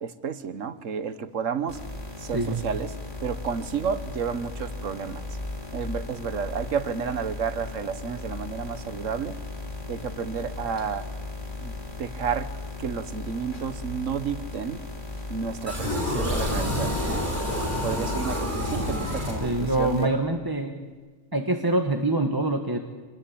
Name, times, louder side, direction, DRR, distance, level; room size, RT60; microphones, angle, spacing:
voice 1, 0.0-1.8 2.2-2.9 3.2-5.2 5.7-9.4 9.9-11.1 11.6-11.7 12.0-12.5 12.8-14.8 15.3-17.2 17.8-20.1, right 6 dB, 80° right, 12 dB, 1.6 m, -31 dB
sound 1, 1.7-20.1, left 2 dB, 40° left, 3.6 m, -37 dB
sound 2, 15.7-19.9, left 1 dB, 40° right, 6.8 m, -28 dB
voice 2, 19.4-20.8 21.3-22.8, right 2 dB, 20° right, 3 dB, 1.5 m, -25 dB
26.0 x 20.5 x 8.7 m, 1.4 s
omnidirectional pair, 1.3 m